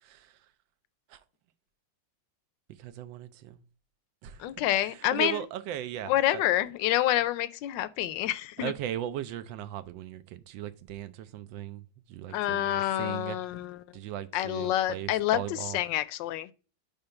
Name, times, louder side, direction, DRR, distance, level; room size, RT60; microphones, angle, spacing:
voice 1, 2.8-3.6 4.2-4.5 4.8-6.4 8.6-13.4 13.9-15.8, right 11 dB, 80° right, 1.4 m, -38 dB
voice 2, 4.4-5.4 6.1-8.7 12.3-13.8 14.3-16.5, left 13 dB, 75° left, 1.2 m, -28 dB
5.3 x 4.4 x 5.7 m
omnidirectional pair, 2.1 m